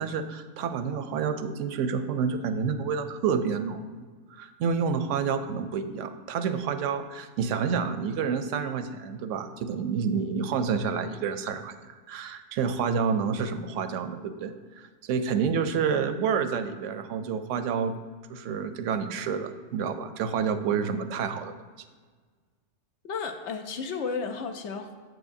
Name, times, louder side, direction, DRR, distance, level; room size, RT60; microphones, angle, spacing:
voice 1, 0.0-4.1 4.3-18.0 18.3-21.5, right 6 dB, 80° right, 10 dB, 0.9 m, -29 dB
voice 2, 23.0-24.9, left 5 dB, 65° left, 6 dB, 0.9 m, -33 dB
7.7 x 7.6 x 2.6 m, 1.5 s
omnidirectional pair, 1.3 m